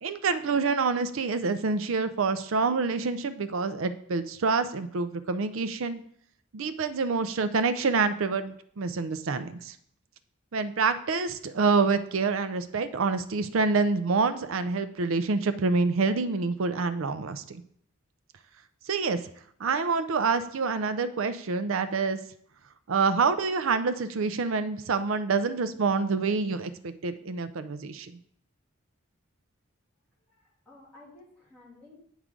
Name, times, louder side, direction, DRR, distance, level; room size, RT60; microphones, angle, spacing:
voice 1, 0.0-6.0 6.5-9.7 10.5-17.6 18.9-19.2 19.6-22.2 22.9-28.2, right 4 dB, 70° right, 11 dB, 0.5 m, -27 dB
voice 2, 30.3-32.0, left 2 dB, 5° left, -9 dB, 2.8 m, -53 dB
9.2 x 4.8 x 3.8 m, 0.65 s
head